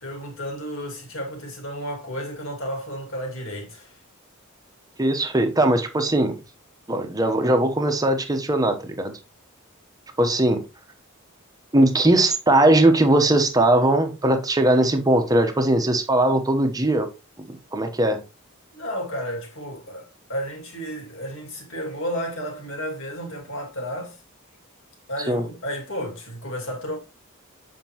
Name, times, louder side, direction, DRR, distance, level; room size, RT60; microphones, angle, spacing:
voice 1, 0.0-3.9 18.7-24.2 25.1-27.0, equal, 65° left, 2.3 m, -32 dB
voice 2, 5.0-6.4 6.9-9.2 10.2-10.7 11.7-17.1 17.5-18.2 25.3-25.4, right 1 dB, 20° right, 0.9 m, -20 dB
7.4 x 5.1 x 3.0 m
head